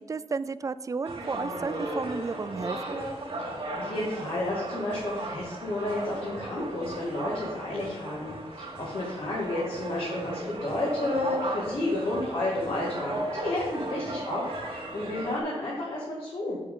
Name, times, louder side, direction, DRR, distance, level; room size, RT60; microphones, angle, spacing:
voice 1, 0.1-3.0, right 4 dB, 35° right, 15 dB, 0.3 m, -33 dB
sound 1, 1.0-15.4, right 1 dB, 65° right, 2.2 m, -36 dB
voice 2, 3.4-16.6, left 1 dB, 60° left, -5 dB, 2.1 m, -31 dB
7.6 x 7.3 x 3.8 m, 1.3 s
wide cardioid pair, 145°, 10 cm